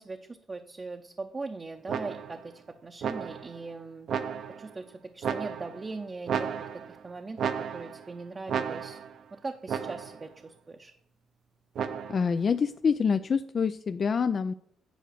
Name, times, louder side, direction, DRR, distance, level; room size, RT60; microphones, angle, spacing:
voice 1, 0.0-4.1 4.6-9.0 9.3-10.9, right 3 dB, 30° right, 4 dB, 0.7 m, -40 dB
sound 1, 1.9-2.5 3.0-3.6 4.1-4.7 5.2-5.9 6.3-7.0 7.4-8.1 8.5-9.2 9.7-10.3 11.8-12.4, right 7 dB, 65° right, 0.7 m, -33 dB
voice 2, 12.1-14.5, left 6 dB, 45° left, 11 dB, 0.4 m, -26 dB
9.2 x 5.0 x 6.5 m, 0.67 s
cardioid pair, 90°, 0 cm